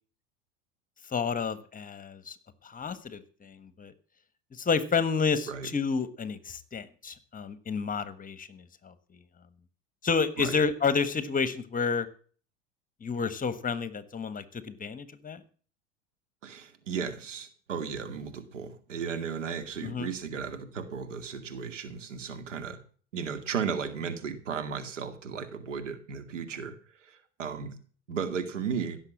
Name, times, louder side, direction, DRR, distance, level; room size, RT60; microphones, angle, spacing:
voice 1, 1.1-2.4 2.6-3.9 4.5-8.9 10.0-12.1 13.0-15.4 19.8-20.1, left 5 dB, 20° left, 14 dB, 1.5 m, -30 dB
voice 2, 16.4-22.8 23.1-27.8 28.1-29.0, right 6 dB, 80° right, 8 dB, 2.3 m, -35 dB
16.0 x 7.4 x 7.4 m, 0.42 s
hypercardioid pair, 80°, 36 cm